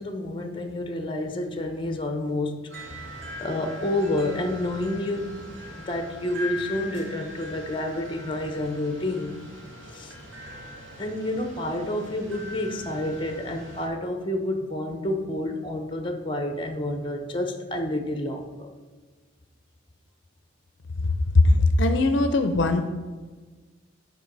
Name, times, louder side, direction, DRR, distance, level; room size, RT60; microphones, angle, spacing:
voice 1, 0.0-5.4 5.8-9.4 9.9-10.1 11.0-18.7, left 1 dB, 25° left, 6 dB, 0.7 m, -29 dB
sound 1, 2.7-13.9, left 1 dB, 70° right, 1.8 m, -41 dB
voice 2, 21.0-22.9, left 2 dB, 60° left, 8 dB, 0.5 m, -20 dB
11.0 x 4.7 x 3.9 m, 1.4 s
head